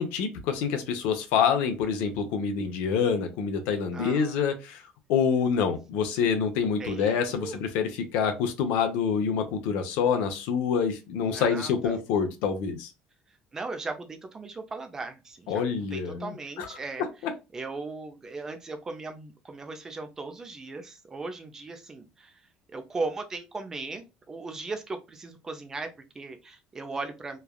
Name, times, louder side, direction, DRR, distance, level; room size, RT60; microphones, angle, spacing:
voice 1, 0.0-4.8 5.1-12.9 15.5-17.3, left 6 dB, 80° left, 7 dB, 0.6 m, -27 dB
voice 2, 3.9-4.4 6.8-7.6 11.2-12.0 13.5-17.0 17.5-22.3 22.7-27.4, right 3 dB, 20° right, 7 dB, 0.4 m, -37 dB
3.2 x 2.3 x 2.2 m, 0.26 s
cardioid pair, 150°, 3 cm